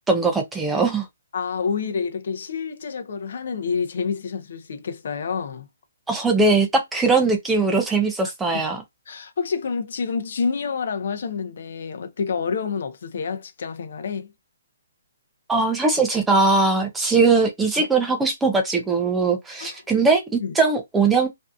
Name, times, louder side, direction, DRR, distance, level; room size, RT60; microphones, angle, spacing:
voice 1, 0.1-1.1 6.1-8.8 15.5-21.3, right 3 dB, 5° right, 0.4 m, -20 dB
voice 2, 1.3-5.7 8.5-8.6 9.1-14.3 19.6-19.7 20.4-20.5, left 5 dB, 50° left, 0.6 m, -28 dB
2.6 x 2.3 x 2.2 m
hypercardioid pair, 170°, 0 cm